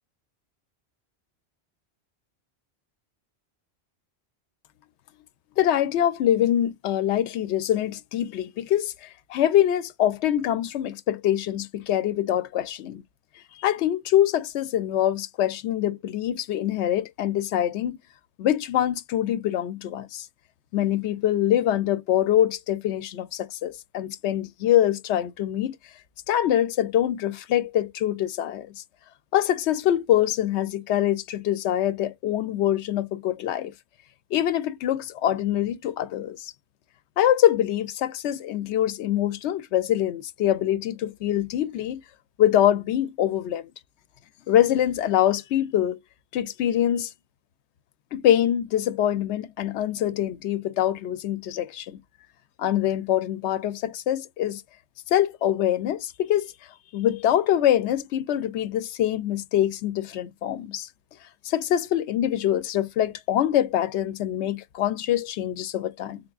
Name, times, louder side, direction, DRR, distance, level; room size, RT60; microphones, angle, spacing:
voice 1, 5.6-13.0 13.6-18.0 18.4-20.3 20.7-25.7 26.3-28.8 29.3-33.7 34.3-36.5 37.2-42.0 42.4-43.7 44.5-46.0 46.3-47.1 48.1-52.0 52.6-54.6 55.1-56.5 56.9-60.9 61.4-66.2, left 11 dB, 90° left, 0.9 m, -24 dB
3.8 x 3.4 x 2.4 m
omnidirectional pair, 1.1 m